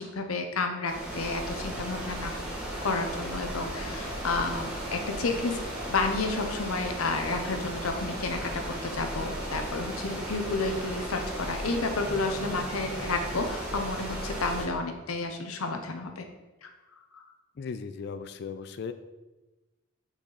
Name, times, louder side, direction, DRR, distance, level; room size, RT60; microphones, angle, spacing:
voice 1, 0.0-2.3 2.8-5.6 5.9-16.2 16.6-16.7 17.1-17.2, left 3 dB, 85° left, 5 dB, 0.8 m, -31 dB
sound 1, 0.8-14.6, right 1 dB, 5° right, 1.2 m, -35 dB
sound 2, 12.0-13.5, right 1 dB, 25° right, 1.9 m, -46 dB
voice 2, 17.6-18.9, left 5 dB, 50° left, 11 dB, 0.3 m, -37 dB
5.9 x 4.3 x 4.0 m, 1.1 s
head